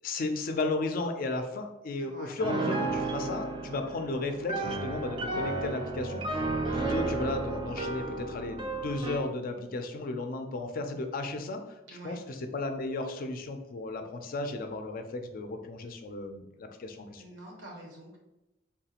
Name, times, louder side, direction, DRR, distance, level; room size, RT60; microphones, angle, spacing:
voice 1, 0.0-6.5 6.7-11.8 12.0-17.2, left 2 dB, 50° left, 6 dB, 0.4 m, -34 dB
voice 2, 2.0-2.4 11.9-12.2 17.2-18.2, right 1 dB, 90° right, -1 dB, 1.0 m, -46 dB
Piano, 2.4-9.3, right 2 dB, 25° right, 0.4 m, -33 dB
3.5 x 2.4 x 2.8 m, 0.96 s
head